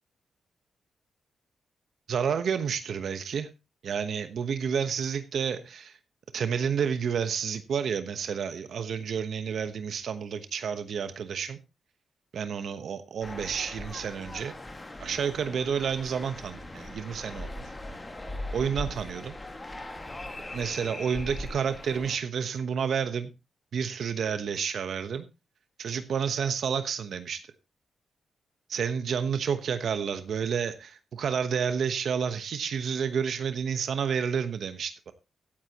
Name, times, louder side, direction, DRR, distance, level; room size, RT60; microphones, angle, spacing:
voice 1, 2.1-3.5 3.8-6.0 6.3-11.6 12.3-14.5 15.0-17.5 18.5-19.3 20.5-23.3 23.7-25.3 25.8-27.4 28.7-35.1, right 7 dB, 65° right, 1.1 m, -30 dB
sound 1, 13.2-22.2, left 1 dB, 15° left, 1.9 m, -40 dB
16.5 x 9.7 x 3.0 m
wide cardioid pair, 155°, 0 cm